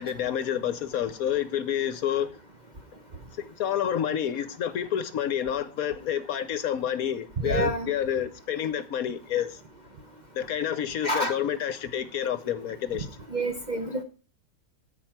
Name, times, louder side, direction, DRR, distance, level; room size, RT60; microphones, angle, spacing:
voice 1, 0.0-2.3 3.3-9.6 10.3-13.1, left 9 dB, 65° left, 1.1 m, -29 dB
voice 2, 7.4-7.9 11.0-11.3 13.3-14.0, right 1 dB, 35° right, 0.8 m, -27 dB
13.0 x 4.6 x 5.8 m
omnidirectional pair, 1.8 m